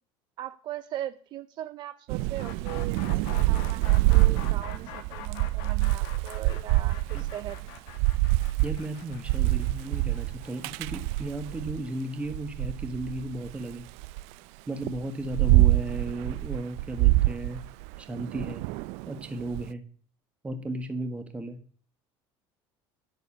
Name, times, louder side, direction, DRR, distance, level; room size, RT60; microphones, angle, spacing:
voice 1, 0.4-7.8, right 12 dB, 45° right, 10 dB, 0.6 m, -40 dB
Thunder / Rain, 2.1-11.8 12.3-14.2 14.8-19.6, right 19 dB, 75° right, 0.5 m, -26 dB
sound 1, 2.4-12.2, left 9 dB, 90° left, 2.0 m, -44 dB
voice 2, 8.6-13.9 14.7-17.6 18.0-18.7 19.1-19.8 20.4-21.6, right 1 dB, 10° right, 7 dB, 1.4 m, -35 dB
11.5 x 6.7 x 8.4 m, 0.43 s
cardioid pair, 170°, 11 cm